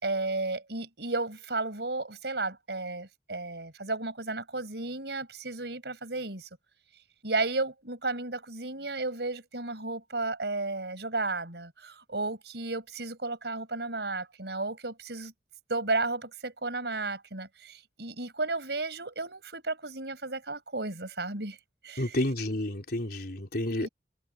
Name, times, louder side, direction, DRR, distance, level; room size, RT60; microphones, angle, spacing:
voice 1, 0.0-6.5 7.2-15.3 15.7-21.6 21.8-22.2 23.8-23.9, right 3 dB, 70° right, 6.2 m, -33 dB
voice 2, 22.0-23.9, left 1 dB, 60° left, 4.2 m, -30 dB
head